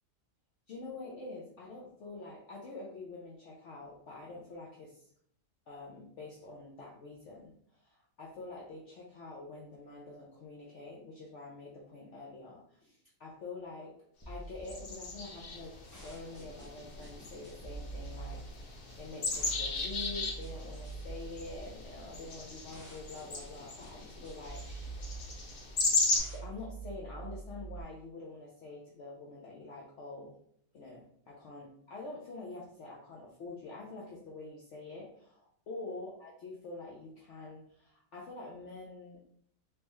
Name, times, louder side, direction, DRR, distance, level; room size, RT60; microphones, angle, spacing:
voice 1, 0.7-5.0 5.7-13.9 14.3-24.6 26.3-30.3 30.7-39.2, left 3 dB, 60° left, -3 dB, 0.9 m, -46 dB
sound 1, 14.2-27.8, right 3 dB, 20° left, 0.5 m, -46 dB
sound 2, 14.7-26.2, left 3 dB, 90° left, 1.4 m, -37 dB
3.2 x 3.2 x 3.0 m, 0.66 s
omnidirectional pair, 1.6 m